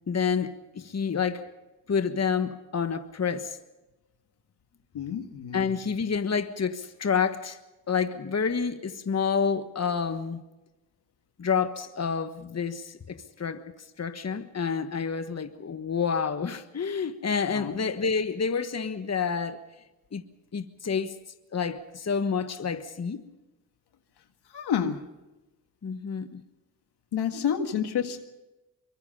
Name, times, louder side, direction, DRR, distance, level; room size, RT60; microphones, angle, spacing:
voice 1, 0.1-1.4 1.9-3.6 5.5-7.6 7.9-10.4 11.4-13.6 14.0-19.6 20.1-20.2 20.5-21.1 21.5-23.2 25.8-26.4, left 6 dB, 40° left, 1.4 m, -28 dB
voice 2, 4.9-5.7 17.5-17.8 24.5-25.0 27.1-28.2, left 8 dB, 80° left, 1.9 m, -29 dB
24.5 x 22.0 x 5.6 m
supercardioid pair, 50°, 39 cm